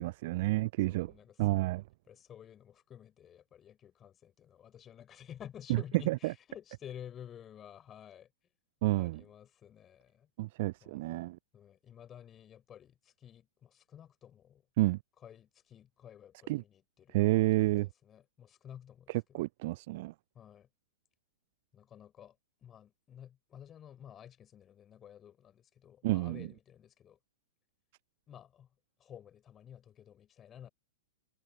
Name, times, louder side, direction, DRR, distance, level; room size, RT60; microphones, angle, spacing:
voice 1, 0.0-1.1 1.4-1.8 6.1-6.3 8.8-9.2 10.4-11.4 14.8-15.0 16.5-16.6 17.1-17.9 19.1-20.1 26.0-26.5, right 20 dB, 50° right, 0.4 m, -30 dB
voice 2, 0.9-1.5 2.1-8.3 8.9-10.3 10.8-11.1 11.5-14.6 15.2-19.4 20.3-20.7 21.7-22.3 22.6-27.2 28.3-28.7 29.0-30.7, left 9 dB, 25° left, 6.7 m, -52 dB
figure-of-eight pair, 105°, 0 cm